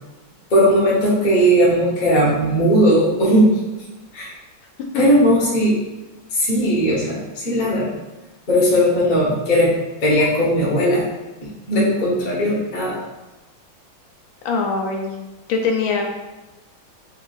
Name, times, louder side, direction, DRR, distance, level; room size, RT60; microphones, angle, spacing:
voice 1, 0.5-3.6 4.1-4.3 4.9-5.8 6.3-8.0 8.5-9.7 10.0-11.1 11.7-13.0, equal, 40° left, -6 dB, 0.6 m, -17 dB
voice 2, 14.4-15.2 15.5-16.0, left 4 dB, 80° left, 2 dB, 1.3 m, -22 dB
3.4 x 2.6 x 3.9 m, 1.1 s
omnidirectional pair, 2.3 m